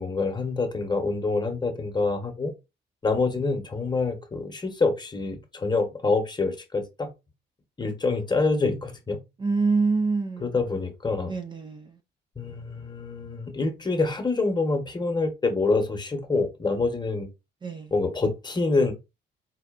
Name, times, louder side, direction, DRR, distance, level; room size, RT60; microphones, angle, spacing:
voice 1, 0.0-2.5 3.0-7.1 7.8-9.2 10.4-11.3 12.4-17.3 17.9-18.9, left 3 dB, 20° left, 0.9 m, -26 dB
voice 2, 9.4-10.5 11.2-11.9 17.6-17.9, right 4 dB, 25° right, 0.4 m, -26 dB
4.3 x 2.4 x 2.4 m
cardioid pair, 90°, 20 cm